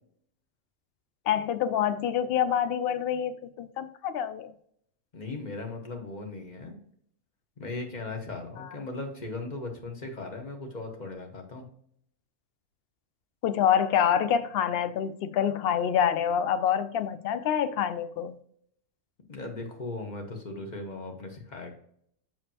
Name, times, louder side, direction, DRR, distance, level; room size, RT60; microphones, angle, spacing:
voice 1, 1.3-4.5 8.6-8.7 13.4-18.4, left 9 dB, 65° left, 0.6 m, -26 dB
voice 2, 5.1-6.8 7.6-11.7 19.3-21.7, left 3 dB, 35° left, 1.2 m, -38 dB
7.3 x 4.9 x 2.8 m
omnidirectional pair, 1.4 m